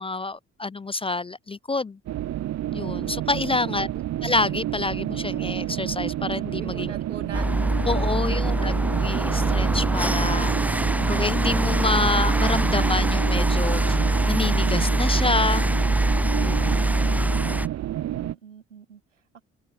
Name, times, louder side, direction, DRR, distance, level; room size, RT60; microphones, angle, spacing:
voice 1, 0.0-2.0 2.7-3.9 4.2-6.9 7.9-8.7 9.0-14.0 14.3-15.6 16.4-16.8, left 3 dB, 15° left, 0.4 m, -27 dB
sound 1, 2.1-18.4, right 13 dB, 50° right, 0.8 m, -29 dB
voice 2, 3.5-3.9 6.6-8.6 18.1-19.4, right 7 dB, 90° right, 3.0 m, -43 dB
sound 2, 7.3-17.7, right 1 dB, 5° right, 0.8 m, -23 dB
open air
figure-of-eight pair, 45°, 36 cm